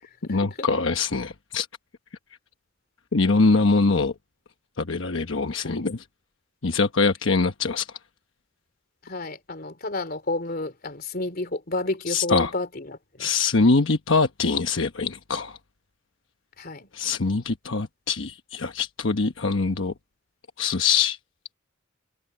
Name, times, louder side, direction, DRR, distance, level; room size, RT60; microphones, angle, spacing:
voice 1, 0.3-1.7 3.1-4.1 4.8-6.0 6.6-7.9 12.1-12.5 13.2-15.6 16.9-19.9 20.6-21.2, left 4 dB, 75° left, 1.1 m, -23 dB
voice 2, 9.0-13.3 16.6-16.9, left 2 dB, 50° left, 3.4 m, -31 dB
head